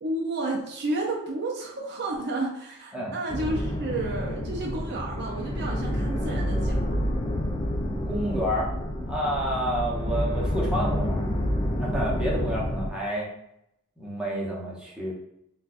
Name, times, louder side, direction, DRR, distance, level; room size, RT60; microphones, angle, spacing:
voice 1, 0.0-7.0, right 2 dB, 50° right, -1 dB, 0.5 m, -31 dB
sound 1, 3.3-12.9, equal, 20° left, 0.3 m, -28 dB
voice 2, 8.1-8.7 9.1-11.3 11.8-13.3 14.0-15.1, equal, 5° right, -5 dB, 0.8 m, -29 dB
4.0 x 2.3 x 2.4 m, 0.79 s
head